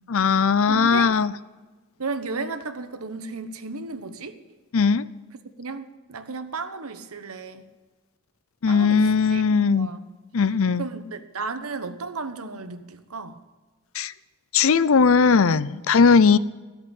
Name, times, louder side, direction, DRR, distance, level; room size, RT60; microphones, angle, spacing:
voice 1, 0.1-1.3 4.7-5.1 8.6-9.9 10.3-10.9 13.9-14.1 14.5-16.4, left 5 dB, 75° left, 17 dB, 0.5 m, -18 dB
voice 2, 0.7-1.1 2.0-4.3 5.6-7.6 8.7-10.1 10.8-13.4, right 4 dB, 90° right, 10 dB, 1.1 m, -34 dB
13.5 x 8.0 x 9.0 m, 1.3 s
head